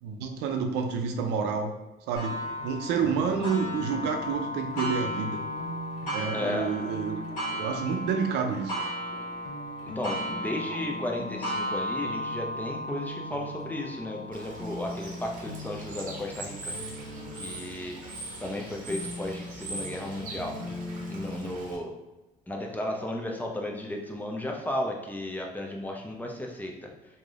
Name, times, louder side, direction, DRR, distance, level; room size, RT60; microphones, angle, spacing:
voice 1, 0.0-1.7 2.1-2.3 2.6-5.4 6.1-7.2 7.5-8.8, right 6 dB, 90° right, 4 dB, 0.5 m, -29 dB
Clock, 2.2-17.5 18.1-18.2 18.7-18.8 19.8-19.9, equal, 50° left, 1.2 m, -36 dB
sound 1, 2.3-21.6, left 1 dB, 90° left, 0.6 m, -42 dB
voice 2, 6.3-6.7 10.0-16.7 17.4-18.0 18.4-20.5 21.1-21.9 22.5-26.9, left 1 dB, 10° left, 0 dB, 0.4 m, -34 dB
Bird / Water, 14.3-21.8, right 2 dB, 50° right, 0.7 m, -42 dB
3.2 x 2.6 x 2.4 m, 1.1 s
cardioid pair, 110°, 17 cm